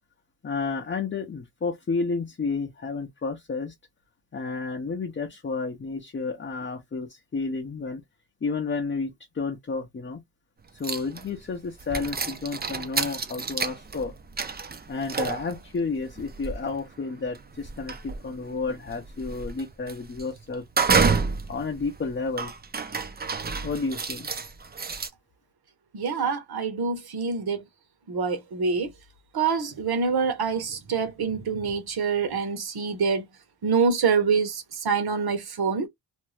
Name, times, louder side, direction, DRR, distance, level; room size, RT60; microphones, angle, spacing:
voice 1, 0.4-3.7 4.3-8.0 8.4-10.2 10.7-14.1 14.6-20.7 21.5-22.5 23.6-24.3, left 4 dB, 30° left, 0.6 m, -31 dB
sound 1, 10.8-11.4 11.8-25.1, right 5 dB, 25° right, 0.4 m, -30 dB
voice 2, 25.9-27.6 28.1-28.9 29.3-33.3 33.6-35.9, right 5 dB, 60° right, 0.9 m, -26 dB
2.6 x 2.2 x 3.1 m
wide cardioid pair, 110°, 43 cm